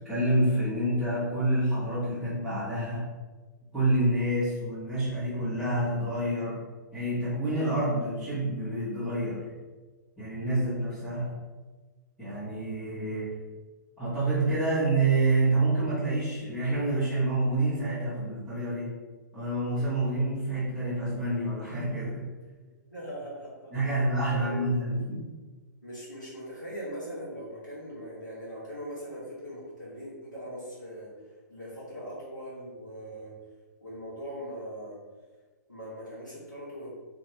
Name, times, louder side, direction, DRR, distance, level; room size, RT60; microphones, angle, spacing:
voice 1, 0.0-3.1 3.7-6.7 6.9-9.5 10.2-11.3 12.2-13.3 14.0-18.9 19.3-22.3 23.7-25.3, right 2 dB, ahead, -15 dB, 0.9 m, -28 dB
voice 2, 22.9-24.6 25.8-31.1 31.5-33.3 33.8-35.0 35.7-36.9, equal, 80° left, -8 dB, 1.3 m, -40 dB
2.9 x 2.7 x 3.0 m, 1.3 s
figure-of-eight pair, 115°, 10 cm